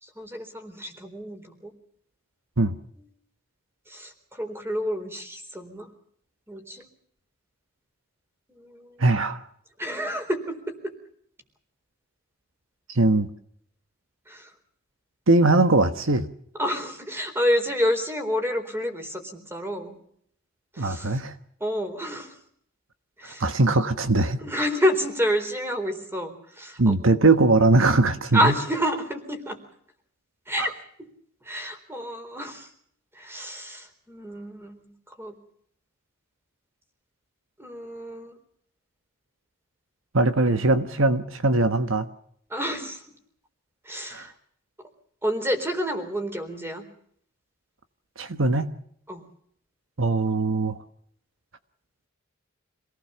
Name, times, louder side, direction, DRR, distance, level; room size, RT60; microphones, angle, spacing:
voice 1, 0.0-1.7 3.9-5.9 6.5-6.9 8.5-9.0 9.8-10.9 14.3-14.5 16.6-20.0 20.7-21.2 21.6-22.4 23.2-23.5 24.4-27.0 28.3-29.6 30.5-31.1 31.4-32.7 33.1-35.3 37.6-38.4 42.5-43.0 43.8-44.3 45.2-46.9 49.1-49.2, equal, 10° right, 6 dB, 4.0 m, -29 dB
voice 2, 9.0-9.4 12.9-13.3 15.3-16.3 20.8-21.3 23.4-24.4 26.8-28.5 30.6-30.7 40.1-42.1 44.1-44.3 48.2-48.7 50.0-50.8, right 2 dB, 70° right, 9 dB, 1.3 m, -21 dB
27.0 x 18.0 x 7.0 m, 0.67 s
head